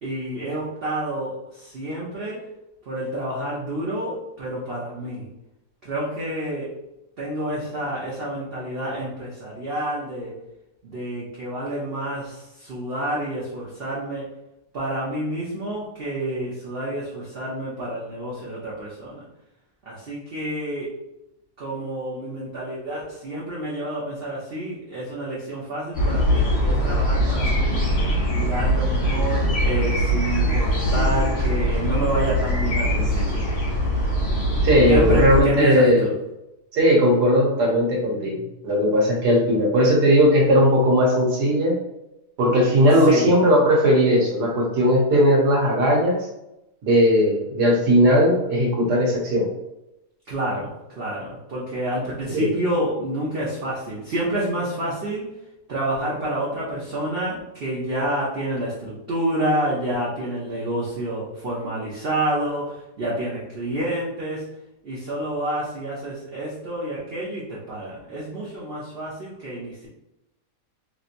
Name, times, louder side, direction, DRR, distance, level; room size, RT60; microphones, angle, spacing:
voice 1, 0.0-2.4 2.9-5.3 5.8-6.7 7.2-10.3 10.8-14.3 14.7-19.2 19.9-21.0 21.6-27.8 28.3-33.5 34.9-36.1 42.9-43.3 50.3-55.3 55.7-64.5 64.8-69.9, right 1 dB, 55° right, -6 dB, 0.7 m, -28 dB
sound 1, 25.9-35.4, equal, 50° left, 1.3 m, -22 dB
voice 2, 34.6-36.1 36.7-41.8 42.4-46.2 46.8-49.5 52.3-52.5, equal, 90° right, -1 dB, 1.4 m, -18 dB
3.2 x 2.7 x 2.5 m, 0.89 s
omnidirectional pair, 1.7 m